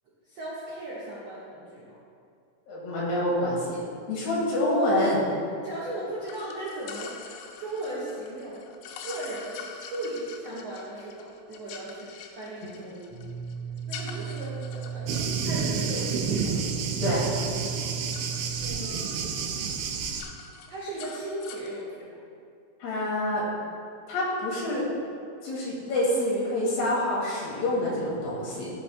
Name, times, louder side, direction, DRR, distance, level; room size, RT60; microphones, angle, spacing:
voice 1, 0.2-2.0 5.6-7.3 7.6-8.6 9.0-9.6 9.9-12.1 12.3-12.9 13.9-15.1 15.4-16.5 18.6-19.2 20.7-22.2, right 1 dB, 70° right, -10 dB, 1.5 m, -37 dB
voice 2, 2.7-3.8 4.1-5.2 12.9-13.0 15.1-15.2 15.7-15.9 17.0-17.3 22.8-23.4 24.1-24.9 25.4-28.7, left 1 dB, 65° left, -5 dB, 3.4 m, -27 dB
sound 1, 6.3-17.3 17.6-19.2 19.5-19.7 20.0-21.8, left 6 dB, 90° left, 3.2 m, -45 dB
sound 2, 13.1-18.7, right 7 dB, 50° right, 2.3 m, -36 dB
Thunder, 15.1-20.2, right 5 dB, 90° right, 2.5 m, -30 dB
14.5 x 7.6 x 2.3 m, 2.4 s
omnidirectional pair, 5.7 m